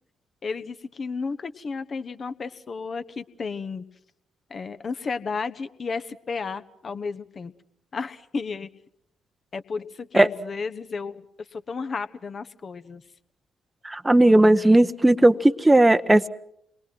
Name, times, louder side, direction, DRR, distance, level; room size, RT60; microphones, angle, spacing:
voice 1, 0.4-3.8 4.5-7.5 7.9-8.7 9.5-11.2 11.5-13.0, left 4 dB, 40° left, 11 dB, 1.1 m, -33 dB
voice 2, 13.8-16.3, right 1 dB, 15° right, 10 dB, 0.9 m, -16 dB
28.5 x 22.0 x 6.1 m, 0.75 s
figure-of-eight pair, 40°, 0 cm